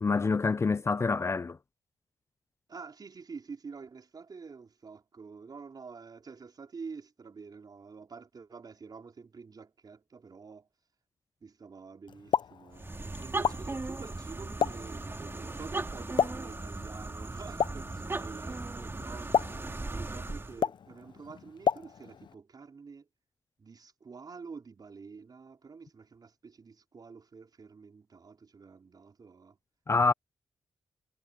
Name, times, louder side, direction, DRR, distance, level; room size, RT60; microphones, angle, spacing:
voice 1, 0.0-1.6 29.9-30.1, left 4 dB, 30° left, 0.4 m, -26 dB
voice 2, 2.7-10.7 11.4-12.9 13.2-19.3 19.9-23.1 23.6-29.6, right 5 dB, 50° right, 4.7 m, -47 dB
Explosion, 12.1-22.3, left 7 dB, 65° left, 0.7 m, -34 dB
sound 1, 12.7-20.6, right 2 dB, 25° right, 2.3 m, -38 dB
supercardioid pair, 55°, 9 cm